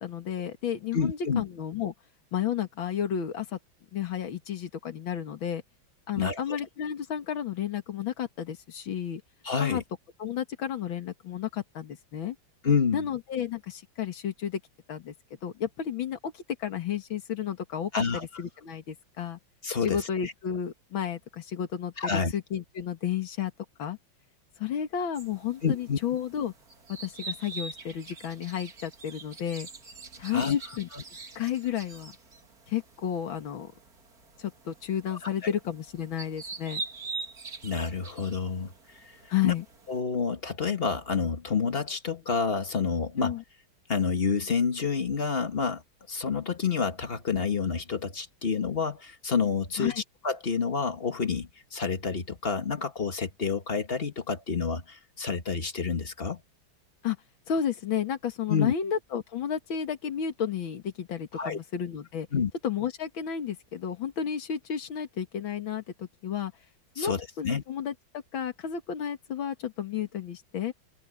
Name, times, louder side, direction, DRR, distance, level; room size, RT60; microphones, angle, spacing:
voice 1, 0.0-1.9 2.3-3.6 3.9-5.6 6.1-9.2 9.6-9.8 10.2-12.4 12.9-14.6 14.9-15.1 15.4-19.4 19.8-23.5 23.8-24.0 24.6-26.5 27.0-29.7 30.2-30.9 31.4-32.1 32.7-33.7 34.4-36.8 39.3-39.6 43.2-43.4 49.8-50.0 57.0-57.2 57.5-62.3 62.6-66.5 67.0-70.7, left 9 dB, 80° left, 2.5 m, -32 dB
voice 2, 0.9-1.4 6.1-6.6 9.4-9.8 12.6-13.1 17.9-18.3 19.6-20.3 22.0-22.3 25.6-26.0 30.3-30.6 37.6-38.7 39.4-39.5 39.9-43.4 43.9-45.8 46.1-49.9 50.2-56.4 58.5-58.7 61.3-61.6 62.3-62.5 67.0-67.6, left 5 dB, 30° left, 1.6 m, -28 dB
sound 1, 25.1-40.0, right 4 dB, 50° right, 2.9 m, -44 dB
omnidirectional pair, 2.1 m